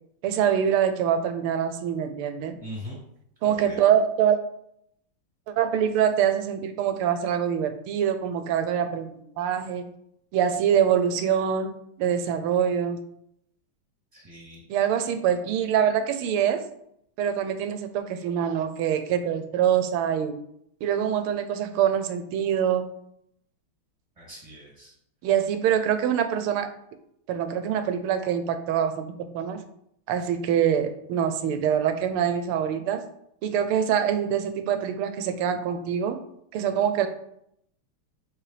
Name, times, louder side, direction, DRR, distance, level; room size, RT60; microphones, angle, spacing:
voice 1, 0.2-2.5 3.4-4.4 5.5-9.9 10.3-13.0 14.7-16.7 17.2-20.4 20.8-22.9 25.2-26.7 27.3-29.6 30.1-33.0 33.4-36.2 36.5-37.1, right 9 dB, 85° right, 9 dB, 1.5 m, -24 dB
voice 2, 2.6-3.0 3.4-3.8 14.1-14.6 24.2-24.9, equal, 15° right, -4 dB, 2.4 m, -41 dB
7.4 x 4.2 x 3.3 m, 0.74 s
omnidirectional pair, 2.4 m